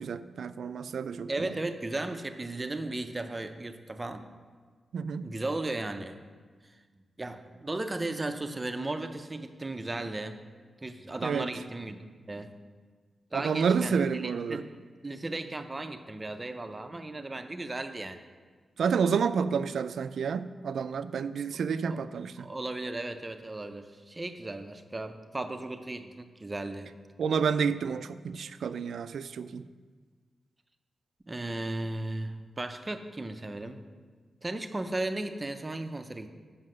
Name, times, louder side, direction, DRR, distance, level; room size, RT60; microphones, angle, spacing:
voice 1, 0.0-1.5 4.9-5.3 11.2-11.5 13.3-14.6 18.8-22.5 27.2-29.6, right 6 dB, 80° right, 13 dB, 0.3 m, -29 dB
voice 2, 1.3-4.3 5.2-6.2 7.2-10.4 10.8-12.0 12.3-12.5 13.3-14.7 15.0-18.2 21.9-22.0 22.4-26.9 31.3-33.8 34.4-36.3, right 2 dB, 20° right, 8 dB, 0.5 m, -35 dB
7.5 x 5.8 x 6.5 m, 1.5 s
wide cardioid pair, 145°, 0 cm